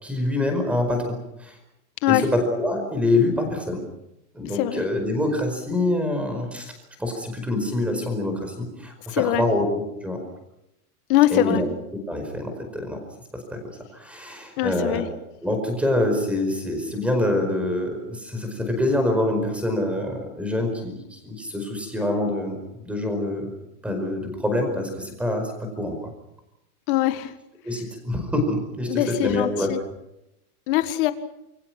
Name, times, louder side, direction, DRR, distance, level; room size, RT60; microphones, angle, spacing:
voice 1, 0.0-1.6 2.1-3.8 4.3-6.7 7.0-10.2 11.3-11.6 11.9-13.0 13.3-13.6 13.9-15.1 15.4-23.5 23.8-26.1 27.6-29.7, left 1 dB, 5° right, 5 dB, 4.9 m, -25 dB
voice 2, 9.1-9.4 11.1-11.6 14.6-15.1 26.9-27.3 28.9-29.8 30.7-31.1, left 15 dB, 35° left, 11 dB, 1.7 m, -22 dB
29.0 x 23.0 x 6.0 m, 0.87 s
supercardioid pair, 165°, 44 cm